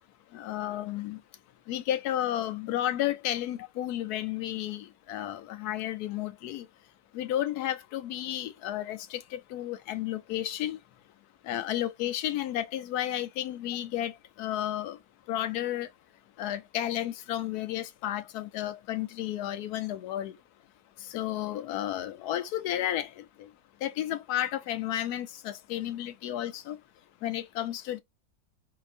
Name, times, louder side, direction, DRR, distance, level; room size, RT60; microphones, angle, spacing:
voice 1, 0.3-1.2 1.7-6.7 7.1-10.8 11.4-15.0 15.3-15.9 16.4-20.3 21.0-23.5 23.8-26.8 27.2-28.0, left 12 dB, 75° left, 1.1 m, -32 dB
3.8 x 2.8 x 2.5 m
omnidirectional pair, 1.7 m